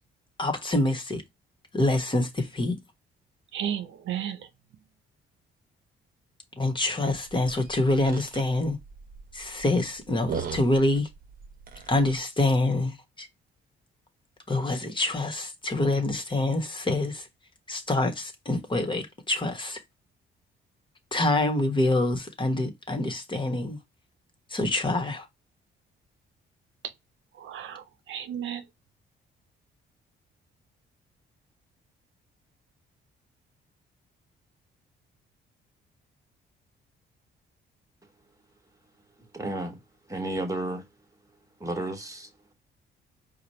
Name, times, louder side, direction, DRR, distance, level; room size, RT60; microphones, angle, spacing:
voice 1, 0.4-1.2 1.7-2.7 6.6-8.8 9.3-11.1 11.9-13.3 14.5-17.3 17.7-19.8 21.1-23.8 24.5-25.3, left 2 dB, 25° left, 1.3 m, -26 dB
voice 2, 3.5-4.4 27.4-28.6, right 9 dB, 75° right, 0.8 m, -33 dB
sound 1, 7.2-12.2, right 6 dB, 45° right, 0.9 m, -39 dB
voice 3, 39.3-39.8 40.1-40.8 41.6-42.3, right 2 dB, 15° right, 1.6 m, -32 dB
4.9 x 2.3 x 4.3 m
cardioid pair, 90°, 20 cm